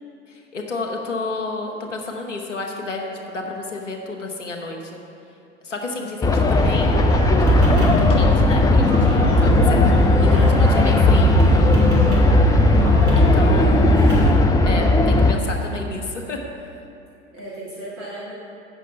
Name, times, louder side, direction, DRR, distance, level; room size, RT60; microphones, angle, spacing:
voice 1, 0.3-5.0 5.6-7.1 7.4-11.4 13.2-14.3 14.6-16.4, left 3 dB, 85° left, 2 dB, 1.0 m, -31 dB
voice 2, 6.0-6.4 10.1-10.6 12.0-12.5 13.6-14.0 17.3-18.3, right 1 dB, 35° right, -8 dB, 2.3 m, -36 dB
sound 1, 6.2-15.3, left 2 dB, 10° left, 0.4 m, -17 dB
sound 2, 6.2-14.3, equal, 50° right, 2.3 m, -21 dB
8.2 x 6.2 x 5.6 m, 2.7 s
figure-of-eight pair, 75°, 36 cm